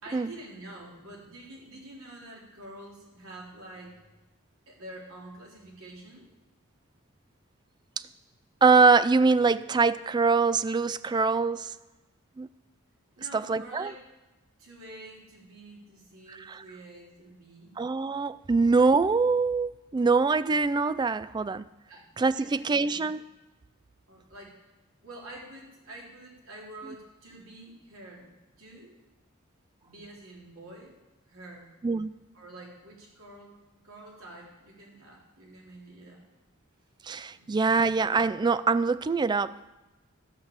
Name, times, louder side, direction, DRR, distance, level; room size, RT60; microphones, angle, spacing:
voice 1, 0.0-4.0 4.7-6.3 13.2-14.0 14.6-17.7 21.9-22.1 22.3-23.0 24.1-24.6 25.0-28.9 29.8-30.9 31.3-31.7 32.3-33.6 33.8-36.2 37.3-37.7, right 1 dB, 75° right, -3 dB, 3.8 m, -47 dB
voice 2, 8.6-11.7 12.4-12.5 13.3-13.9 16.4-16.6 17.8-21.7 22.2-23.2 31.8-32.1 37.1-39.5, right 4 dB, 20° right, 16 dB, 0.3 m, -24 dB
13.5 x 6.3 x 7.2 m, 1.1 s
head